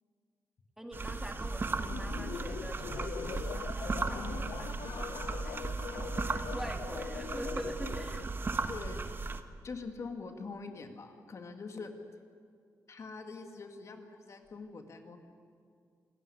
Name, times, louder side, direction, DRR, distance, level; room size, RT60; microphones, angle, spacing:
voice 1, 0.8-8.5, equal, 5° right, 5 dB, 2.1 m, -45 dB
sound 1, 0.9-9.4, right 3 dB, 35° right, 1.2 m, -36 dB
sound 2, 1.8-8.3, left 8 dB, 75° left, 0.8 m, -42 dB
voice 2, 8.7-9.1 9.6-11.9 12.9-15.2, left 4 dB, 50° left, 5 dB, 2.0 m, -44 dB
26.5 x 13.0 x 9.7 m, 2.2 s
cardioid pair, 95°, 6 cm